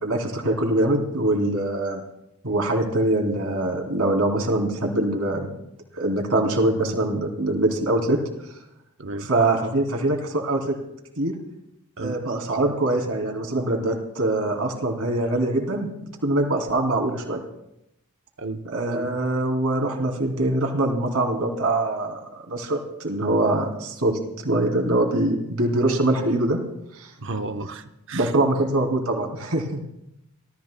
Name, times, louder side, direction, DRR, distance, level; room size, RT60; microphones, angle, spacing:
voice 1, 0.0-2.0 2.4-5.5 5.9-8.2 9.2-10.8 11.2-11.4 12.0-15.9 16.2-17.4 18.6-26.6 26.9-27.1 28.1-29.8, right 1 dB, 80° right, 2.9 m, -23 dB
voice 2, 27.2-27.8 28.1-28.3, right 3 dB, 60° right, 0.8 m, -32 dB
29.0 x 14.0 x 2.2 m
head